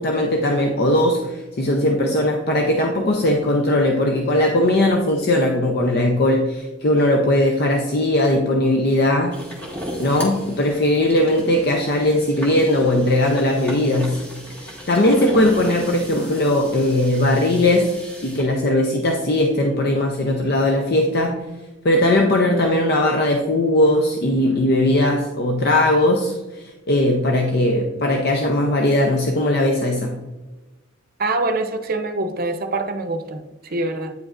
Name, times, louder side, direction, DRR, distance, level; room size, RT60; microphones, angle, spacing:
voice 1, 0.0-9.4 10.0-14.3 14.6-17.9 18.2-21.4 21.8-30.2, left 1 dB, 55° left, 2 dB, 0.6 m, -19 dB
sound 1, 9.3-18.4, equal, 10° left, 1.6 m, -37 dB
voice 2, 31.2-34.1, right 2 dB, 50° right, 7 dB, 0.7 m, -25 dB
9.2 x 5.0 x 2.5 m, 1.1 s
head